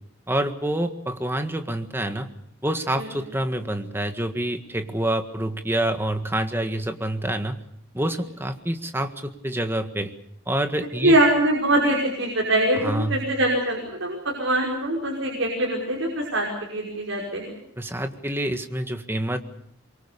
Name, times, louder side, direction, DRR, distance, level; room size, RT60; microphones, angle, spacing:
voice 1, 0.3-2.3 2.6-7.6 7.9-10.1 10.5-11.2 12.8-13.2 17.8-19.4, right 1 dB, 10° right, 7 dB, 1.7 m, -27 dB
voice 2, 11.0-17.6, right 1 dB, 70° right, -1 dB, 5.6 m, -23 dB
25.0 x 23.5 x 6.8 m, 0.68 s
head